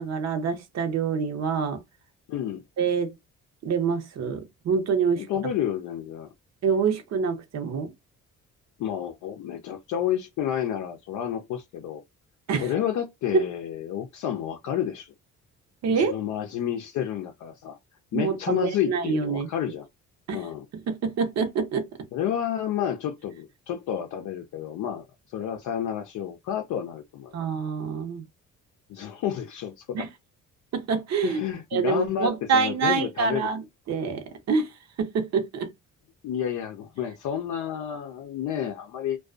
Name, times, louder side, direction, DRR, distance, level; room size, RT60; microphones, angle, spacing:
voice 1, 0.0-1.8 2.8-3.1 3.6-5.3 6.6-7.9 12.5-12.7 15.8-16.1 18.1-19.5 20.3-20.4 20.9-21.9 27.3-28.2 29.9-30.1 30.7-31.4 31.7-34.7 35.0-35.7, right 5 dB, 60° right, 0.8 m, -26 dB
voice 2, 2.3-2.6 5.1-6.3 8.8-12.0 12.6-15.1 15.9-17.8 18.1-19.9 20.3-20.7 22.1-25.0 25.3-27.4 28.9-30.1 31.2-33.5 36.2-39.2, left 10 dB, 70° left, 0.5 m, -30 dB
2.4 x 2.2 x 2.4 m
cardioid pair, 90°, 30 cm